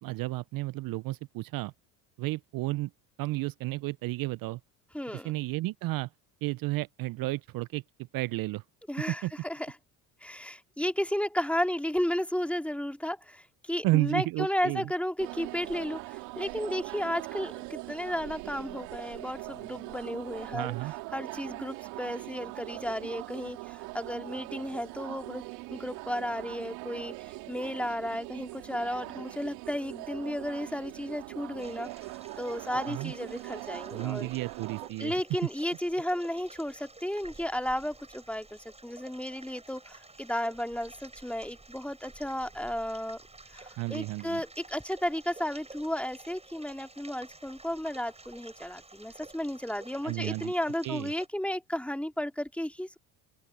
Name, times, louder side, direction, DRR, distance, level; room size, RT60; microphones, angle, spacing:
voice 1, 0.0-1.7 2.2-2.9 3.2-4.6 5.1-6.1 6.4-8.6 9.1-9.3 13.8-14.9 20.5-20.9 32.9-33.1 33.9-35.2 43.8-44.4 50.0-50.5 50.8-51.1, right 19 dB, 55° right, 0.6 m, -32 dB
voice 2, 4.9-5.3 8.9-9.7 10.2-20.7 21.1-31.9 32.4-34.3 35.0-43.2 43.5-53.0, equal, 5° left, 2.6 m, -33 dB
sound 1, 15.2-34.9, right 24 dB, 75° right, 3.2 m, -42 dB
sound 2, 31.6-51.3, right 3 dB, 15° right, 6.2 m, -52 dB
open air
supercardioid pair, 75°, 40 cm